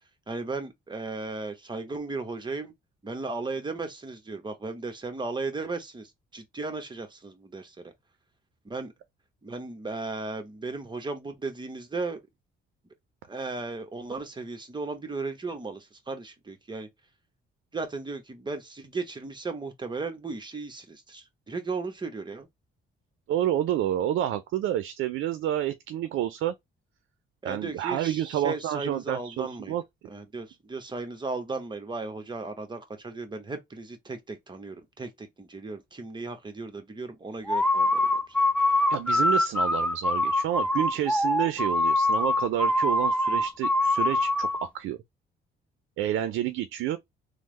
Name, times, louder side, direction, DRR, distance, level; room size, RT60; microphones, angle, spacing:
voice 1, 0.3-2.7 3.0-7.9 8.6-8.9 9.4-12.2 13.3-16.9 17.7-22.5 27.4-29.8 30.1-38.3, right 3 dB, 20° right, 0.9 m, -36 dB
voice 2, 23.3-26.5 27.4-29.8 38.9-45.0 46.0-47.0, right 12 dB, 80° right, 0.4 m, -29 dB
sound 1, 37.5-44.7, left 1 dB, 5° left, 0.4 m, -24 dB
3.3 x 2.0 x 3.1 m
cardioid pair, 90°, 20 cm